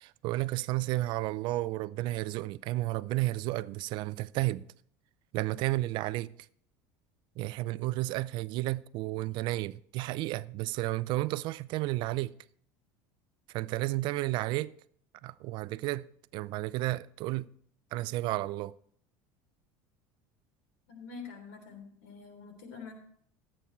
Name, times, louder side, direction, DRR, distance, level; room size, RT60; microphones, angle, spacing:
voice 1, 0.0-4.7 5.3-6.3 7.4-12.3 13.5-14.7 15.2-16.1 16.3-17.5 17.9-18.8, right 18 dB, 60° right, 0.4 m, -32 dB
voice 2, 20.9-22.9, left 5 dB, 85° left, 3.4 m, -46 dB
13.0 x 8.6 x 4.4 m
supercardioid pair, 115°, 9 cm